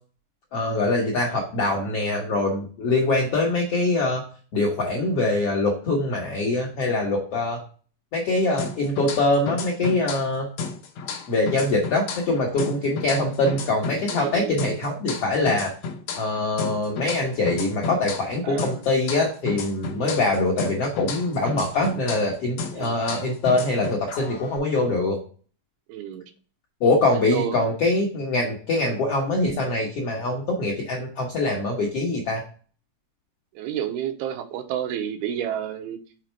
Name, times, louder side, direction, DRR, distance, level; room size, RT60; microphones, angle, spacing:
voice 1, 0.5-4.2 4.5-7.6 8.1-10.5 11.3-15.7 16.1-25.2 26.8-32.4, left 2 dB, 70° left, -2 dB, 1.4 m, -23 dB
sound 1, 8.6-10.3 10.6-14.3 14.6-18.3 18.6-22.3 22.6-24.6, left 4 dB, 90° left, 1.5 m, -33 dB
voice 2, 14.1-14.5 18.4-18.8 20.0-20.2 22.7-23.0 25.9-26.3 27.1-27.6 33.5-36.0, right 10 dB, 85° right, 5 dB, 2.7 m, -30 dB
6.5 x 4.1 x 4.4 m, 0.40 s
omnidirectional pair, 4.4 m